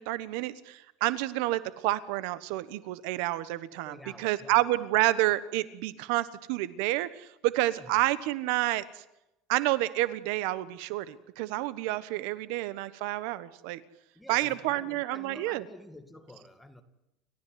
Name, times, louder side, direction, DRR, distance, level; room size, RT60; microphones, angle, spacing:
voice 1, 0.0-8.8 9.5-13.8 14.3-15.6, right 17 dB, 75° right, 15 dB, 1.3 m, -29 dB
voice 2, 3.8-4.6 7.8-8.0 14.2-16.8, left 1 dB, 5° left, 7 dB, 2.1 m, -49 dB
29.5 x 14.0 x 9.5 m, 0.88 s
cardioid pair, 150°, 0 cm